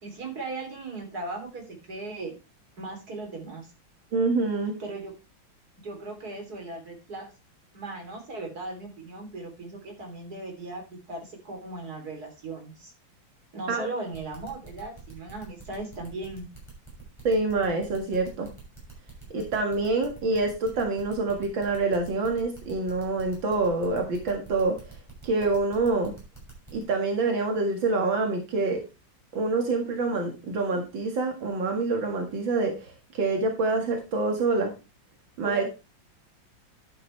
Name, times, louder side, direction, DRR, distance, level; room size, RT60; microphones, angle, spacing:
voice 1, 0.0-2.3 2.8-3.7 4.8-5.1 5.8-7.3 7.7-12.9 13.5-16.5 35.4-35.7, right 2 dB, 55° right, 3 dB, 3.9 m, -37 dB
voice 2, 4.1-4.7 13.7-13.9 17.2-18.5 19.3-24.8 25.2-26.1 26.7-28.8 29.3-34.7 35.4-35.7, right 3 dB, 85° right, 2 dB, 2.6 m, -26 dB
sound 1, 14.1-26.8, right 4 dB, 15° right, 6.4 m, -47 dB
11.5 x 8.8 x 3.3 m, 0.28 s
omnidirectional pair, 2.0 m